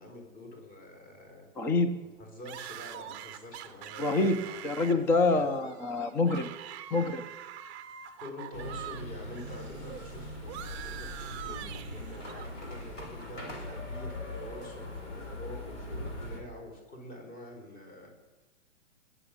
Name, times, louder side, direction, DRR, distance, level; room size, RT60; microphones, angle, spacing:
voice 1, 0.0-1.5 2.2-5.5 8.2-18.1, left 1 dB, 30° left, 2 dB, 4.9 m, -47 dB
voice 2, 1.6-1.9 4.0-4.4 4.6-6.5 6.9-7.2, left 3 dB, 5° left, 8 dB, 0.5 m, -26 dB
sound 1, 2.5-9.0 9.3-12.5, right 11 dB, 25° right, 0.7 m, -44 dB
sound 2, 8.5-16.4, left 1 dB, 70° left, 4.3 m, -41 dB
21.0 x 7.4 x 6.7 m, 1.2 s
figure-of-eight pair, 115°, 37 cm